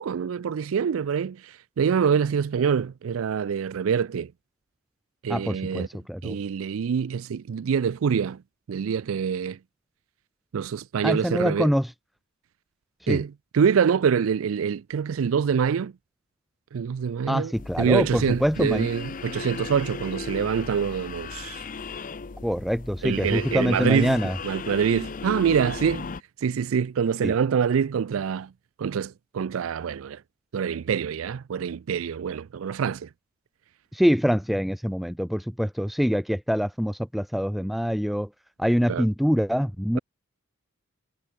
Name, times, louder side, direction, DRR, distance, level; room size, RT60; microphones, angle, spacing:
voice 1, 0.0-4.3 5.2-5.9 6.2-8.4 8.7-9.6 10.5-11.7 13.1-15.9 16.7-17.5 17.8-21.6 23.0-24.2 24.4-26.1 26.4-28.5 28.8-30.2 30.5-33.1 38.9-39.1, right 7 dB, 85° right, 0.4 m, -25 dB
voice 2, 5.3-6.4 11.0-11.9 13.0-13.2 17.3-18.9 22.4-24.4 27.2-27.3 33.9-38.3 38.6-40.0, equal, ahead, 0.4 m, -25 dB
sound 1, 17.5-26.2, left 4 dB, 40° left, 0.6 m, -36 dB
head